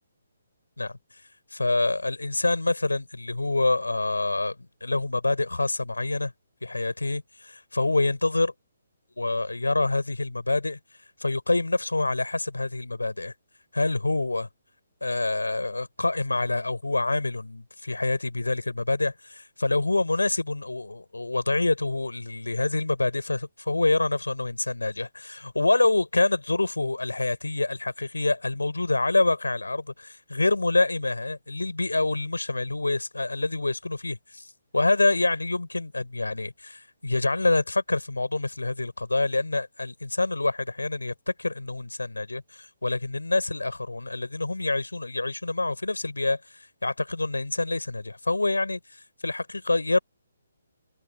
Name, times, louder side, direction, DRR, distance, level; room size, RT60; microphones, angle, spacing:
voice 1, 1.5-4.6 4.8-6.3 6.6-8.5 9.2-10.8 11.2-13.3 13.7-14.5 15.0-50.0, left 2 dB, 75° left, 3.9 m, -26 dB
figure-of-eight pair, 135°, 0 cm